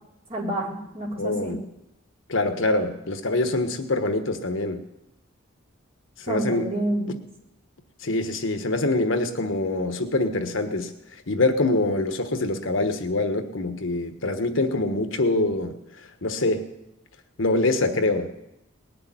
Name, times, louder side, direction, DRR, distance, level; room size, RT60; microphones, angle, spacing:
voice 1, 0.3-1.6 6.3-7.1, right 1 dB, 30° right, -3 dB, 3.7 m, -28 dB
voice 2, 1.2-1.6 2.3-4.8 6.2-6.7 8.0-10.9 11.3-15.7 16.2-16.7 17.4-18.3, left 2 dB, 70° left, 7 dB, 1.3 m, -24 dB
19.0 x 6.8 x 10.0 m, 0.89 s
head